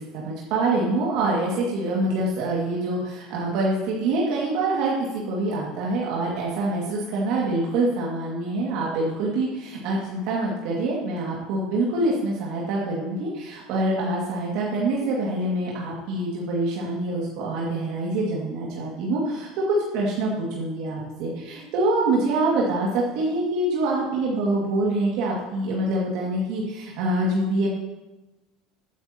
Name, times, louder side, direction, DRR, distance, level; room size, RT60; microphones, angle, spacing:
voice 1, 0.1-27.7, right 2 dB, 70° right, -4 dB, 2.1 m, -25 dB
14.5 x 8.8 x 2.9 m, 1.1 s
hypercardioid pair, 90°, 0 cm